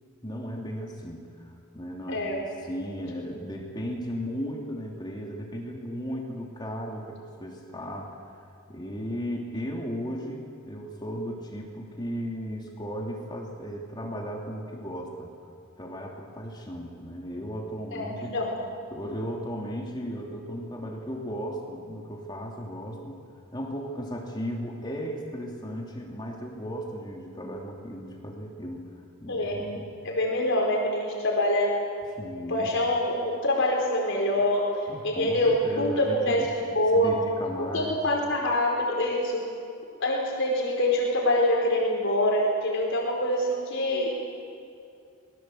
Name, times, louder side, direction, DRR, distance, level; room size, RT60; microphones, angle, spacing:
voice 1, 0.2-8.2 8.7-15.3 15.8-18.3 18.9-23.2 23.5-29.9 32.2-32.7 34.9-36.5 36.9-38.0, equal, 20° left, 0 dB, 2.9 m, -36 dB
voice 2, 2.1-2.4 17.9-18.5 29.3-29.7 30.0-31.8 32.5-34.7 35.0-37.2 37.7-39.5 40.0-44.2, left 1 dB, 60° left, -1 dB, 4.7 m, -25 dB
27.0 x 21.0 x 7.9 m, 2.4 s
head